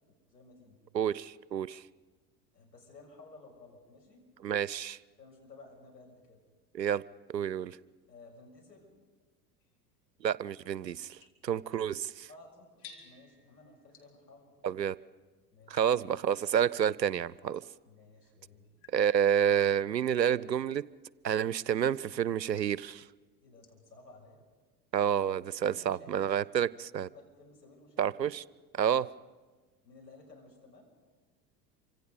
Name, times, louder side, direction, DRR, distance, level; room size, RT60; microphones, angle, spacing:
voice 1, 0.3-0.8 2.5-4.2 5.2-6.4 8.1-8.9 12.3-14.5 15.5-15.8 17.8-18.7 23.4-24.4 25.6-26.4 27.0-28.4 29.8-30.8, left 3 dB, 85° left, 0 dB, 6.3 m, -55 dB
voice 2, 0.9-1.8 4.4-5.0 6.7-7.0 7.3-7.8 10.2-12.3 14.6-15.0 15.7-17.6 18.9-20.9 21.2-23.1 24.9-27.1 28.0-28.4 28.7-29.1, right 9 dB, 90° right, 21 dB, 0.6 m, -29 dB
sound 1, 9.6-16.9 17.5-23.9, left 6 dB, 55° left, 4.1 m, -61 dB
28.0 x 25.5 x 5.2 m, 1.3 s
figure-of-eight pair, 80°, 49 cm